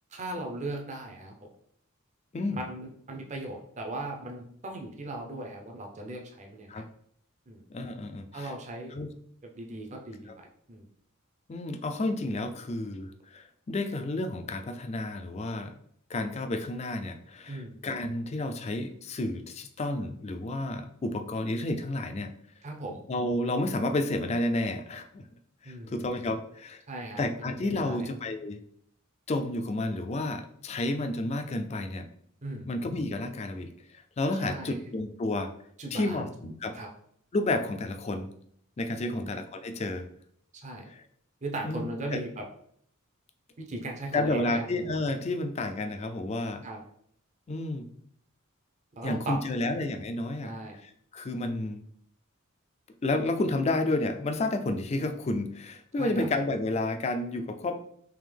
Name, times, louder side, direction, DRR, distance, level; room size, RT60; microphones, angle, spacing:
voice 1, 0.1-1.5 2.6-6.8 7.5-7.6 8.3-8.9 9.6-10.3 10.7-10.8 17.5-17.8 22.6-23.0 25.6-25.9 26.9-27.2 27.7-28.1 32.4-32.7 34.4-34.8 35.8-36.3 36.7-36.9 39.0-39.3 40.6-40.9 41.4-42.4 43.6-44.7 46.6-46.8 49.0-49.4 49.6-49.8 50.4-50.8 56.0-56.3, right 2 dB, 35° right, 2 dB, 0.6 m, -38 dB
voice 2, 7.7-8.5 8.9-9.1 10.3-10.4 11.5-15.8 16.1-22.3 23.1-25.2 25.6-26.8 27.2-28.6 29.3-32.1 32.7-33.7 34.2-35.5 35.9-36.8 37.3-38.3 38.8-40.1 40.9-41.0 41.6-42.2 44.1-46.6 47.5-47.9 49.0-50.6 51.1-51.9 53.0-57.8, left 2 dB, 30° left, 7 dB, 0.3 m, -31 dB
3.6 x 2.8 x 3.3 m, 0.67 s
head